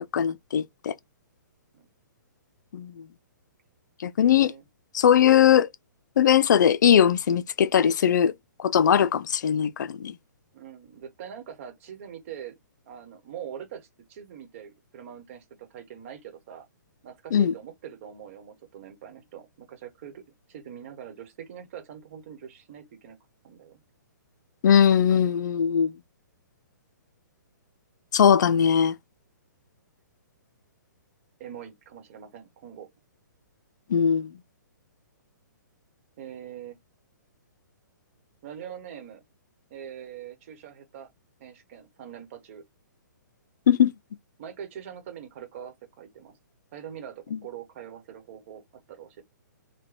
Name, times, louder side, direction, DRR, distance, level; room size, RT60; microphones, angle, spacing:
voice 1, 0.1-0.9 2.7-2.9 4.0-4.5 4.9-5.7 6.2-8.3 8.6-10.1 17.3-17.5 24.6-25.9 28.1-29.0 33.9-34.3 43.7-43.9, left 8 dB, 65° left, 0.4 m, -20 dB
voice 2, 10.5-12.6 12.9-16.7 17.0-20.2 20.5-23.2 23.4-23.8 28.5-28.6 31.4-32.9 36.2-36.8 38.4-39.2 39.7-41.1 41.4-42.6 44.4-46.4 46.7-49.2, right 9 dB, 40° right, 1.0 m, -43 dB
3.2 x 2.1 x 3.7 m
hypercardioid pair, 145°, 10 cm